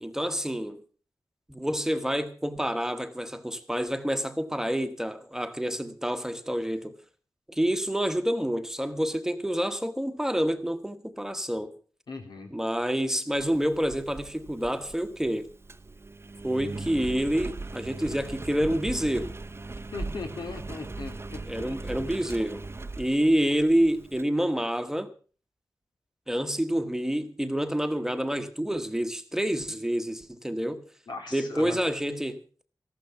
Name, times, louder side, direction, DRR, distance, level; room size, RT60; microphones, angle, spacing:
voice 1, 0.0-0.8 1.5-6.9 7.5-11.7 12.5-15.5 16.4-19.3 21.4-22.7 23.0-25.1 26.3-30.8 31.3-32.4, equal, 5° right, 1.2 m, -28 dB
voice 2, 12.1-12.5 19.9-22.0 31.1-31.8, left 3 dB, 85° left, 3.3 m, -39 dB
Engine, 13.3-24.2, right 3 dB, 35° right, 0.8 m, -39 dB
14.5 x 12.5 x 5.9 m
wide cardioid pair, 105°, 7 cm